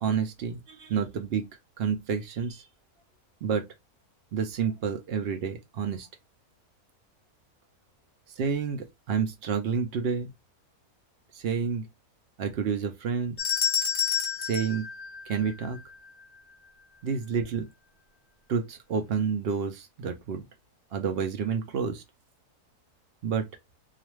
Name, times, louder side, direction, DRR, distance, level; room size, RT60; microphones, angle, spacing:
voice 1, 0.0-1.5 1.8-2.7 3.4-3.7 4.3-6.1 8.4-10.3 11.3-11.9 12.4-13.3 14.4-14.9 15.3-15.8 17.0-17.7 18.5-20.4 20.9-22.0 23.2-23.5, right 6 dB, 70° right, 0.5 m, -29 dB
sound 1, 13.4-15.8, left 7 dB, 40° left, 0.9 m, -29 dB
2.4 x 2.4 x 3.0 m
omnidirectional pair, 1.6 m